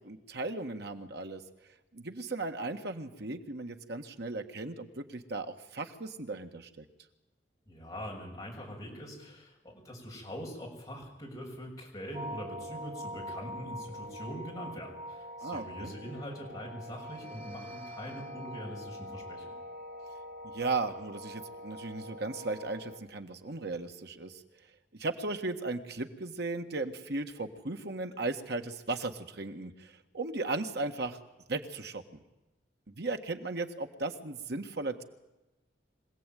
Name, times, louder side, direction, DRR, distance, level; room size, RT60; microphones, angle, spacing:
voice 1, 0.0-1.4 1.9-6.9 15.4-15.9 20.4-24.4 25.0-31.2 31.5-32.2 32.9-35.0, right 3 dB, 65° right, 6 dB, 1.7 m, -36 dB
voice 2, 7.7-19.5, equal, 20° left, -1 dB, 7.1 m, -43 dB
sound 1, 12.1-23.0, equal, 40° right, 2.4 m, -44 dB
25.0 x 17.0 x 9.3 m, 1.0 s
head